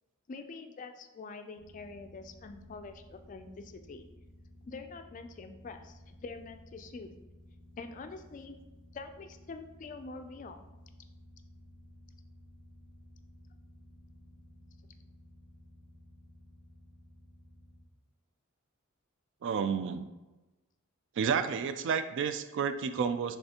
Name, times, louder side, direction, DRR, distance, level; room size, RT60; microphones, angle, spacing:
voice 1, 0.3-4.1 4.6-7.1 7.8-8.5 8.9-10.6, left 3 dB, 35° left, 7 dB, 0.3 m, -45 dB
sound 1, 1.5-17.8, left 1 dB, 45° right, 1.0 m, -55 dB
voice 2, 19.4-20.1 21.2-23.4, right 6 dB, 60° right, 11 dB, 0.3 m, -31 dB
5.5 x 3.4 x 2.8 m, 1.1 s
head